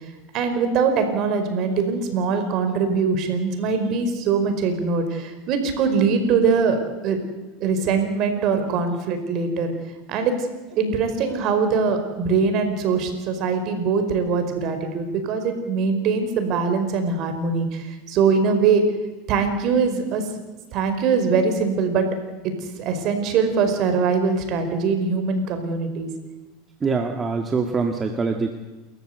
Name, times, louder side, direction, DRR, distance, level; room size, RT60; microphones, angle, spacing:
voice 1, 0.3-6.8 7.0-7.2 7.6-9.7 10.1-10.3 10.7-17.7 18.1-18.8 19.3-20.2 20.7-22.0 22.8-26.1, right 5 dB, 50° right, 7 dB, 5.1 m, -22 dB
voice 2, 26.8-28.5, right 4 dB, 20° right, 4 dB, 1.9 m, -24 dB
28.5 x 14.5 x 8.1 m, 1.2 s
supercardioid pair, 110°, 0 cm